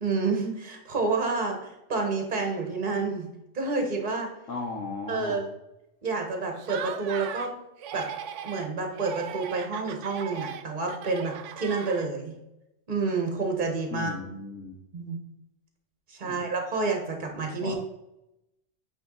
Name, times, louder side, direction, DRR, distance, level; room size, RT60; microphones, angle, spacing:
voice 1, 0.0-3.3 3.5-4.3 5.1-5.5 6.0-7.5 7.9-8.1 8.4-12.3 12.9-14.1 14.9-15.2 16.1-17.8, right 3 dB, 40° right, 3 dB, 1.4 m, -29 dB
voice 2, 4.5-5.4 13.9-14.8 16.2-16.4 17.6-17.8, left 3 dB, 80° left, -1 dB, 1.4 m, -36 dB
Laughter, 6.6-7.5 7.8-8.7 9.0-12.3, right 8 dB, 75° right, 0.9 m, -38 dB
8.8 x 3.5 x 3.9 m, 0.88 s
omnidirectional pair, 1.3 m